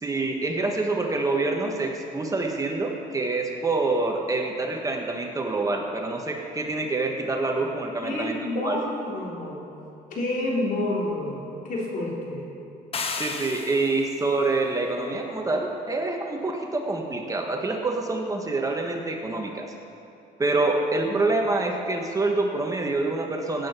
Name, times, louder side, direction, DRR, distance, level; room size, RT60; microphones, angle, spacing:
voice 1, 0.0-8.8 13.2-19.7 20.4-23.7, right 2 dB, 20° right, 2 dB, 1.3 m, -26 dB
voice 2, 8.0-9.6 10.1-11.4 11.6-12.4 21.0-21.2, left 1 dB, 55° left, -3 dB, 3.8 m, -29 dB
sound 1, 12.9-14.2, left 4 dB, 35° left, 1.0 m, -32 dB
17.0 x 8.7 x 6.0 m, 2.8 s
cardioid pair, 110°, 17 cm